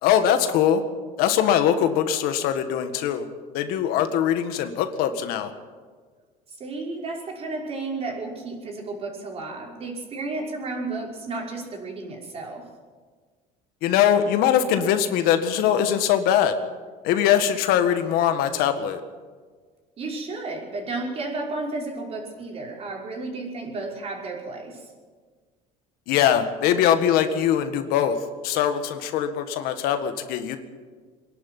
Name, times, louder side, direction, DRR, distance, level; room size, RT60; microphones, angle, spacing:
voice 1, 0.0-0.8 1.2-3.3 3.5-5.5 13.8-16.5 17.0-19.0 26.1-28.2 28.4-30.6, left 9 dB, 75° left, 8 dB, 1.8 m, -22 dB
voice 2, 6.6-12.7 20.0-24.9, right 3 dB, 40° right, -1 dB, 5.4 m, -32 dB
24.0 x 11.5 x 9.5 m, 1.5 s
cardioid pair, 125°, 16 cm